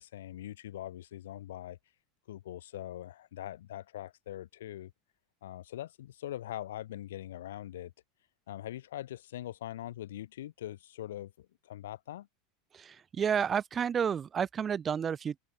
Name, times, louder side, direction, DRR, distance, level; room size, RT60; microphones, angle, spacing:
voice 1, 0.0-1.8 2.3-4.9 5.4-7.9 8.5-12.3, left 13 dB, 85° left, 0.4 m, -42 dB
voice 2, 12.7-15.4, right 7 dB, 30° right, 0.5 m, -31 dB
open air
hypercardioid pair, 100°, 0 cm